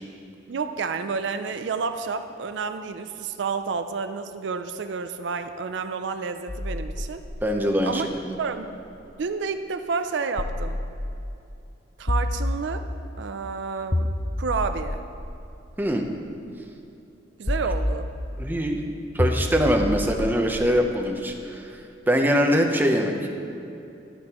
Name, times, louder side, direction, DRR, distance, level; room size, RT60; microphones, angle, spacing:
voice 1, 0.5-7.2 7.8-8.1 8.4-8.7 9.2-10.8 12.0-12.8 13.2-14.1 14.4-15.0 17.4-18.1, right 5 dB, 70° right, 8 dB, 0.4 m, -30 dB
sound 1, 6.5-9.2 10.4-11.4 12.1-13.2 13.9-16.2 17.5-18.6 19.2-21.3, left 1 dB, 15° left, 0.3 m, -30 dB
voice 2, 7.4-8.4 15.8-16.0 18.4-18.8 19.1-21.6 22.1-23.3, equal, 10° right, 3 dB, 0.7 m, -23 dB
11.5 x 10.5 x 3.0 m, 2.8 s
head